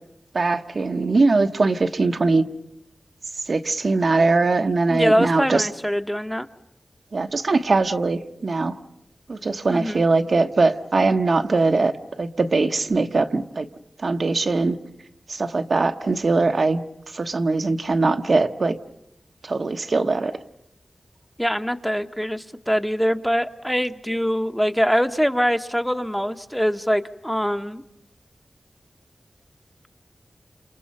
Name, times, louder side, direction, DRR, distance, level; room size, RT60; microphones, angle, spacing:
voice 1, 0.3-2.4 3.5-5.7 7.1-8.8 9.3-11.9 12.2-13.7 14.0-14.8 15.3-16.8 17.1-18.8 19.4-20.3, right 3 dB, 65° right, 6 dB, 1.1 m, -21 dB
voice 2, 4.9-6.5 9.7-10.0 21.4-27.8, equal, ahead, 7 dB, 1.0 m, -23 dB
29.5 x 27.5 x 5.5 m, 0.81 s
wide cardioid pair, 55°, 0 cm